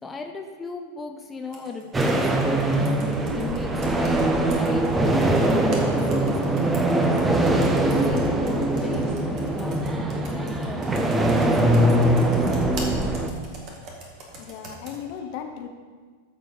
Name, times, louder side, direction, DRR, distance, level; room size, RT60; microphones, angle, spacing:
voice 1, 0.0-10.9 11.4-12.8, left 4 dB, 15° left, 3 dB, 0.7 m, -36 dB
Computer keyboard, 1.5-15.0, right 1 dB, 40° right, 1.8 m, -42 dB
under the bridge, 1.9-13.3, right 1 dB, 15° right, 0.9 m, -22 dB
voice 2, 14.1-15.7, left 8 dB, 45° left, 6 dB, 0.9 m, -37 dB
13.5 x 4.7 x 5.3 m, 1.5 s
figure-of-eight pair, 90°, 0 cm